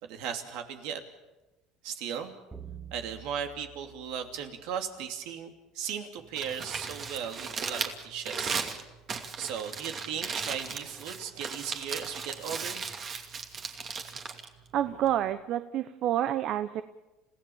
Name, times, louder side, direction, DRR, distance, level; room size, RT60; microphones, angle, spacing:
voice 1, 0.0-1.0 1.8-2.3 2.9-8.6 9.4-12.8, right 8 dB, 75° right, 5 dB, 2.8 m, -37 dB
sound 1, 2.5-5.0, right 8 dB, 10° right, 1.9 m, -48 dB
Crumpling crinkling, 6.2-15.3, right 5 dB, 40° right, 2.6 m, -37 dB
voice 2, 14.7-16.8, right 11 dB, 60° right, 12 dB, 0.9 m, -28 dB
30.0 x 16.5 x 7.3 m, 1.1 s
supercardioid pair, 100°, 0 cm